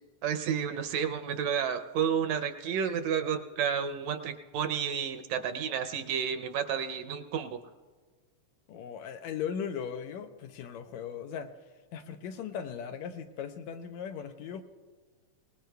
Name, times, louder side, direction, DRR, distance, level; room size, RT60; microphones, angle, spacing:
voice 1, 0.2-7.6, right 7 dB, 75° right, 9 dB, 1.8 m, -31 dB
voice 2, 8.7-11.5 11.9-14.6, left 7 dB, 80° left, 7 dB, 2.0 m, -38 dB
24.5 x 19.5 x 2.3 m, 1.4 s
omnidirectional pair, 3.3 m